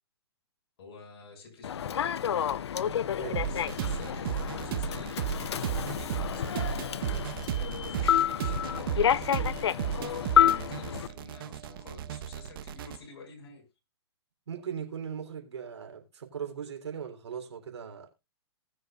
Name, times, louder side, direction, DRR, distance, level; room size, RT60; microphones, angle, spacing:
voice 1, 0.8-2.0 3.4-13.6, left 3 dB, 60° left, 6.5 m, -50 dB
Human voice / Subway metro underground, 1.6-11.1, left 9 dB, 75° left, 0.6 m, -29 dB
voice 2, 3.1-3.5 14.5-18.1, right 7 dB, 80° right, 3.4 m, -39 dB
sound 1, 3.3-13.0, right 9 dB, 55° right, 1.0 m, -34 dB
sound 2, 6.7-13.3, right 13 dB, 30° right, 1.9 m, -58 dB
20.0 x 6.6 x 2.4 m
hypercardioid pair, 135°, 14 cm